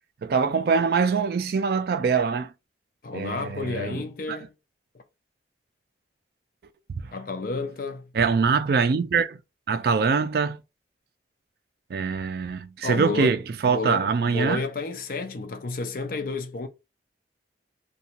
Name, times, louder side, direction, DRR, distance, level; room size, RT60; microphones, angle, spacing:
voice 1, 0.2-2.5 3.1-4.0 7.0-7.1 8.1-9.4 9.7-10.6 11.9-14.6, right 5 dB, 55° right, 0.3 m, -23 dB
voice 2, 3.0-4.5 4.9-5.0 7.1-8.1 12.8-16.7, left 3 dB, 50° left, 0.5 m, -31 dB
2.8 x 2.2 x 2.8 m
head